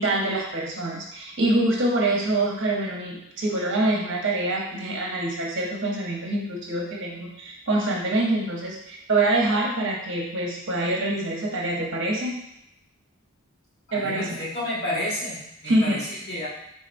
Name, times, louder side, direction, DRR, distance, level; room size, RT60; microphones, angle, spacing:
voice 1, 0.0-12.4 13.9-14.4 15.6-16.0, right 2 dB, 55° right, -2 dB, 0.8 m, -25 dB
voice 2, 13.9-16.5, left 1 dB, 50° left, -8 dB, 1.5 m, -31 dB
4.2 x 3.8 x 2.5 m, 0.81 s
head